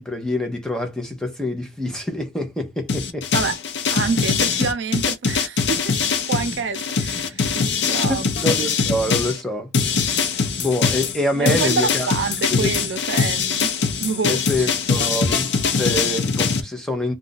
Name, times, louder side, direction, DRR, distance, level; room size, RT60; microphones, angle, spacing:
voice 1, 0.0-3.3 8.1-9.7 10.1-12.1 12.5-12.7 14.3-17.2, left 1 dB, 5° left, 0.6 m, -26 dB
sound 1, 2.9-9.4 9.7-16.6, left 5 dB, 70° left, 0.5 m, -22 dB
voice 2, 3.9-6.0 6.3-8.2 11.4-13.7 14.0-14.7, right 4 dB, 75° right, 0.5 m, -27 dB
2.4 x 2.2 x 3.8 m
head